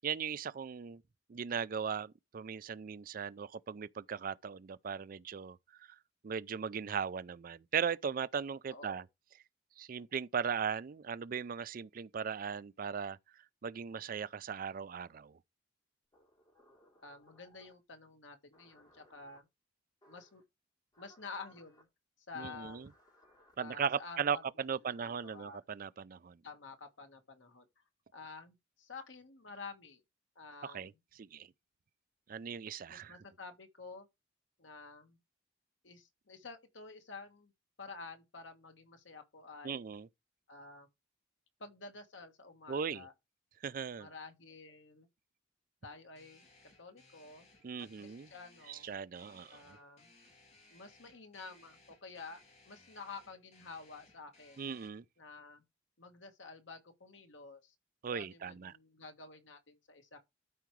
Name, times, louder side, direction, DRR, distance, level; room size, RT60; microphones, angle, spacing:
voice 1, 0.0-1.0 1.3-5.9 6.2-9.0 9.8-13.2 13.6-15.4 22.4-22.9 23.6-26.4 30.6-30.9 31.2-31.5 32.3-33.2 39.6-40.1 42.7-43.1 43.6-44.1 47.6-48.3 48.7-49.8 54.6-55.0 58.0-58.7, right 6 dB, 50° right, 0.4 m, -38 dB
voice 2, 8.7-9.0 17.0-19.5 20.1-20.4 21.0-21.9 22.2-22.9 23.6-24.4 24.8-25.6 26.4-27.8 28.1-30.0 30.3-30.9 32.9-34.1 34.6-35.2 35.8-37.5 37.8-39.8 40.5-40.9 41.6-43.1 44.0-45.1 45.8-47.5 48.0-48.9 49.5-50.1 50.7-54.6 55.2-55.6 56.0-57.7 58.1-60.2, left 4 dB, 85° left, 1.5 m, -50 dB
sound 1, 16.1-17.8 18.5-19.4 20.0-20.4 20.9-21.8 22.6-23.5 24.6-25.4, equal, 20° left, 3.4 m, -65 dB
sound 2, 46.2-54.9, left 2 dB, 35° left, 2.8 m, -64 dB
13.0 x 4.7 x 3.2 m
head